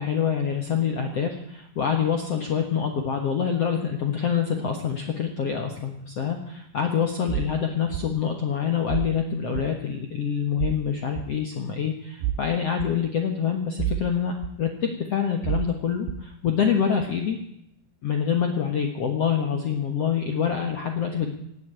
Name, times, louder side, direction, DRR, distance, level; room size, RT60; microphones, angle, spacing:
voice 1, 0.0-14.3 14.6-17.4 18.0-21.3, left 7 dB, 60° left, 3 dB, 1.6 m, -26 dB
sound 1, 7.3-7.5 7.9-8.1 8.9-9.1 9.6-9.7 10.6-10.8 11.2-11.3 12.2-12.4 12.8-12.9 13.8-14.1 14.4-14.5 15.4-15.7 16.1-16.2, right 12 dB, 85° right, 3.0 m, -28 dB
18.0 x 8.5 x 9.2 m, 0.76 s
omnidirectional pair, 4.9 m